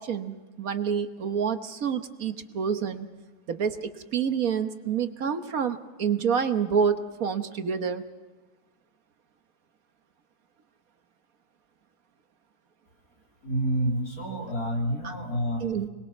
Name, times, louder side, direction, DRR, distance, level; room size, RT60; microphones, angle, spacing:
voice 1, 0.0-3.1 3.5-8.0 15.0-15.1 15.6-15.9, right 7 dB, 65° right, 9 dB, 1.5 m, -28 dB
voice 2, 13.4-15.7, right 1 dB, 70° left, 0 dB, 3.9 m, -28 dB
25.0 x 21.5 x 5.9 m, 1.2 s
omnidirectional pair, 1.6 m